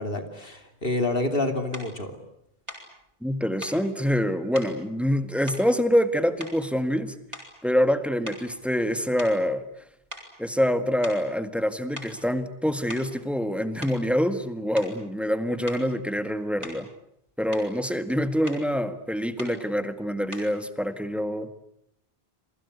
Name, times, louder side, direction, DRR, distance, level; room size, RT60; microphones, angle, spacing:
voice 1, 0.0-2.2, left 2 dB, 65° left, 7 dB, 3.2 m, -28 dB
sound 1, 1.7-1.9 2.7-2.9 3.6-3.8 4.5-4.8 5.5-6.1 6.4-6.8 7.3-7.7 8.2-9.8 10.1-10.3 11.0-11.3 12.0-12.2 12.7-13.2 13.8-14.0 14.8-15.0 15.7-15.9 16.6-16.9 17.3-17.7 18.5-18.7 19.4-19.6 20.3-20.6, left 1 dB, 30° right, 7.2 m, -41 dB
voice 2, 3.2-7.2 7.6-9.6 10.4-16.9 17.4-21.5, equal, ahead, 10 dB, 1.7 m, -25 dB
28.5 x 23.5 x 8.2 m, 0.78 s
omnidirectional pair, 1.0 m